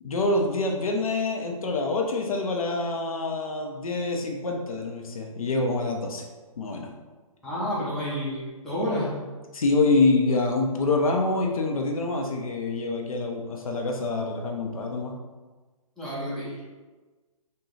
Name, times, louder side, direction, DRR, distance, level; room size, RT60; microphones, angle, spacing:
voice 1, 0.0-6.2 6.6-7.0 9.5-15.2, left 3 dB, 75° left, 1 dB, 0.6 m, -26 dB
voice 2, 7.4-9.1 16.0-16.6, equal, ahead, -10 dB, 0.8 m, -30 dB
3.6 x 2.2 x 3.1 m, 1.3 s
hypercardioid pair, 135°, 18 cm